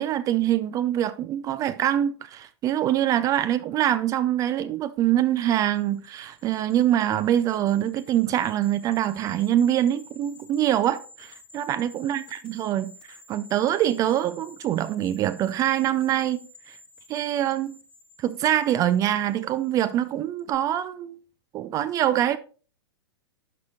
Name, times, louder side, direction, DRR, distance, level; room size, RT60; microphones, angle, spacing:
voice 1, 0.0-12.9 13.3-16.4 16.7-16.8 17.1-17.8 18.2-21.2 21.5-22.4, right 11 dB, 25° right, 0.3 m, -24 dB
sound 1, 5.4-20.0 20.4-20.5, left 2 dB, 5° left, 1.2 m, -51 dB
11.5 x 4.9 x 2.4 m
figure-of-eight pair, 105°, 14 cm